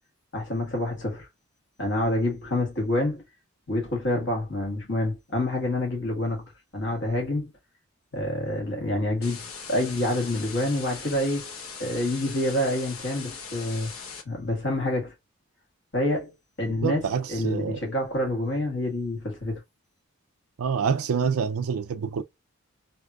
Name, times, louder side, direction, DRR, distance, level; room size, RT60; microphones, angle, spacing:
voice 1, 0.3-1.3 1.8-3.2 3.7-6.4 6.7-7.5 8.1-11.5 11.8-13.9 14.2-15.1 15.9-16.3 16.6-17.0 17.3-19.6, left 1 dB, 55° left, 1.6 m, -27 dB
sound 1, 9.2-14.2, left 5 dB, 80° left, 1.2 m, -40 dB
voice 2, 16.6-17.8 20.6-22.2, right 6 dB, 90° right, 0.4 m, -27 dB
3.4 x 2.7 x 2.3 m
head